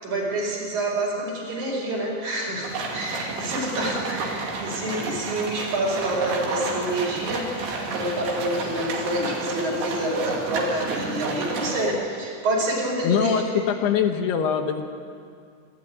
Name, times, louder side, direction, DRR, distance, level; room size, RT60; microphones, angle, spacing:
voice 1, 0.0-7.5 7.9-13.4, right 1 dB, 45° right, -3 dB, 6.0 m, -27 dB
sound 1, 2.6-11.9, right 3 dB, 70° right, 4.6 m, -31 dB
voice 2, 13.0-15.0, left 7 dB, 75° left, 5 dB, 3.2 m, -23 dB
27.0 x 13.0 x 9.7 m, 2.3 s
omnidirectional pair, 4.8 m